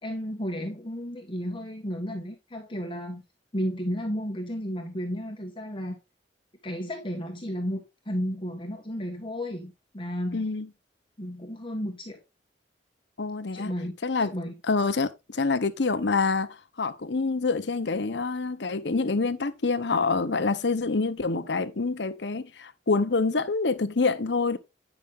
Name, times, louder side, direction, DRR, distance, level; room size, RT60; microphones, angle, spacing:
voice 1, 0.0-3.2 3.5-5.9 6.6-10.5 11.2-12.2 13.5-13.9 14.2-14.5, equal, 30° left, 1.5 m, -33 dB
voice 2, 10.3-10.7 13.2-13.7 14.0-14.3 14.7-24.6, left 4 dB, 70° left, 0.9 m, -26 dB
9.6 x 6.1 x 3.6 m
head